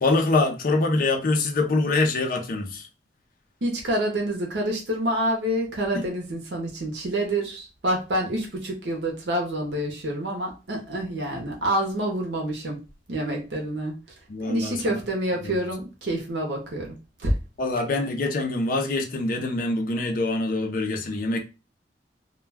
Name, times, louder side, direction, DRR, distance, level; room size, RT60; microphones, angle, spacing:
voice 1, 0.0-2.9 5.9-6.0 14.3-15.0 15.4-15.6 17.6-21.4, left 2 dB, 50° left, 0.5 m, -24 dB
voice 2, 3.6-12.8 13.1-13.9 14.4-16.9 17.2-17.3, right 1 dB, 80° right, 0.7 m, -27 dB
2.2 x 2.2 x 3.3 m
head